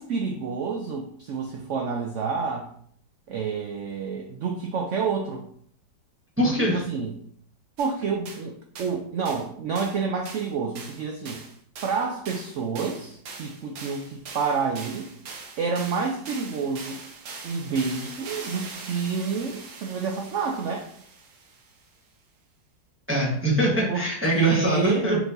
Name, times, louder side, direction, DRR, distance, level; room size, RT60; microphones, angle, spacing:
voice 1, 0.0-2.7 3.3-5.5 6.7-7.1 7.8-11.4 11.8-15.1 15.6-17.0 17.4-20.9 23.9-24.1 24.3-25.1, right 5 dB, 85° right, 2 dB, 0.6 m, -29 dB
voice 2, 6.4-6.8 23.1-25.2, right 1 dB, 10° right, -4 dB, 0.9 m, -23 dB
sound 1, 7.8-7.9 8.3-8.4 8.7-8.9 9.2-9.5 9.8-10.0 10.3-21.8, right 4 dB, 65° right, 1.2 m, -42 dB
4.7 x 3.9 x 2.7 m, 0.63 s
omnidirectional pair, 1.8 m